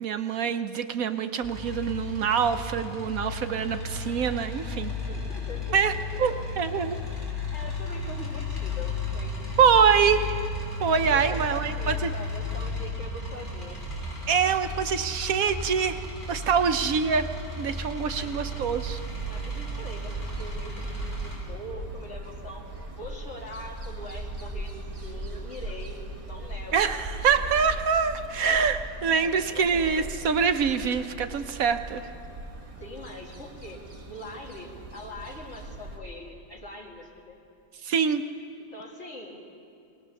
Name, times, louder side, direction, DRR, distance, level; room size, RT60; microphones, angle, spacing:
voice 1, 0.0-4.9 5.7-5.9 6.2-7.0 9.6-10.4 10.8-12.1 14.3-16.0 16.3-17.3 17.6-19.0 26.7-32.1 37.8-38.2, right 6 dB, 70° right, 9 dB, 1.2 m, -25 dB
sound 1, 1.4-21.4, left 2 dB, 30° left, 6.1 m, -34 dB
voice 2, 5.1-5.8 7.5-9.4 11.1-13.8 18.1-18.3 19.3-22.6 23.0-24.7 25.0-26.9 29.2-30.1 32.8-37.4 38.6-39.4, left 1 dB, 50° left, -1 dB, 2.7 m, -42 dB
sound 2, 18.6-36.0, right 2 dB, 20° right, 1.5 m, -39 dB
21.0 x 19.0 x 7.0 m, 2.5 s
omnidirectional pair, 1.6 m